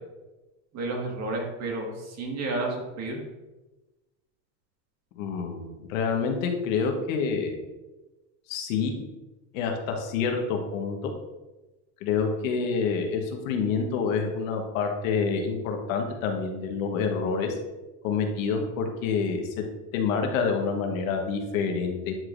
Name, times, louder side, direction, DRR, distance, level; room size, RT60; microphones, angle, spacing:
voice 1, 0.7-3.2, right 2 dB, 40° right, 0 dB, 1.8 m, -31 dB
voice 2, 5.1-7.6 8.5-9.0 9.5-11.1 12.0-17.5 18.0-19.5 19.9-22.2, left 5 dB, 85° left, 3 dB, 1.3 m, -27 dB
9.3 x 4.8 x 2.6 m, 1.1 s
supercardioid pair, 135°, 39 cm